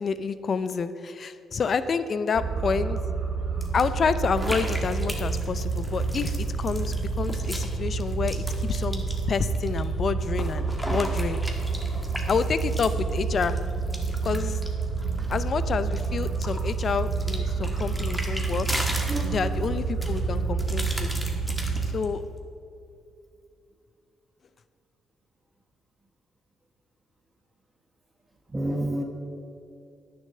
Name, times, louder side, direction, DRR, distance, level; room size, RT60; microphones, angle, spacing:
voice 1, 0.0-3.0 3.7-11.4 12.3-13.6 14.2-14.6 15.3-18.7 19.3-21.1 21.9-22.2, left 5 dB, 50° left, 13 dB, 0.5 m, -28 dB
sound 1, 2.3-21.9, right 4 dB, 65° right, 2.8 m, -29 dB
sound 2, 3.6-3.8 4.4-7.7 8.0-9.8 10.2-15.5 15.9-19.7 20.0-22.0, equal, 5° left, 1.5 m, -37 dB
voice 2, 15.0-15.3 19.1-19.4 21.8-22.0 28.5-29.0, right 1 dB, 20° right, 3 dB, 1.1 m, -32 dB
9.8 x 7.0 x 6.7 m, 2.5 s
cardioid pair, 90°, 0 cm